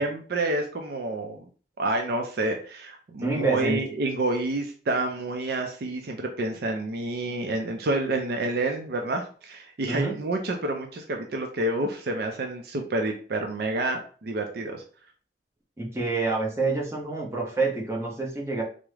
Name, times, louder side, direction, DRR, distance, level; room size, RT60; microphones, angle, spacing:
voice 1, 0.0-1.4 1.8-14.8, right 2 dB, 60° right, 3 dB, 0.4 m, -29 dB
voice 2, 3.2-3.8 9.9-10.1 15.8-18.6, right 3 dB, 15° right, -3 dB, 0.8 m, -27 dB
3.5 x 2.0 x 3.1 m, 0.41 s
head